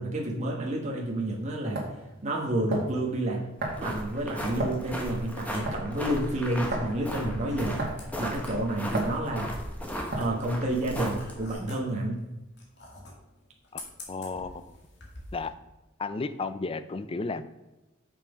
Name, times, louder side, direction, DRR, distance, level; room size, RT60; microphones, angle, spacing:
voice 1, 0.0-1.8 2.2-3.5 3.8-7.8 8.2-9.6 10.2-12.2, right 1 dB, 35° right, -2 dB, 1.3 m, -30 dB
sound 1, 1.0-1.1 1.7-2.0 2.7-3.0 3.6-3.9 4.6-4.9 5.7-5.9 6.7-6.9 7.8-8.1 8.9-9.2 10.1-10.4, right 2 dB, 50° right, 2.1 m, -31 dB
sound 2, 3.6-11.5, equal, 5° left, 1.2 m, -36 dB
sound 3, 5.5-15.5, left 2 dB, 55° left, 2.0 m, -48 dB
voice 2, 13.7-14.8 15.3-15.5 16.0-17.5, left 3 dB, 25° left, 12 dB, 0.4 m, -34 dB
7.0 x 5.9 x 5.0 m, 1.0 s
head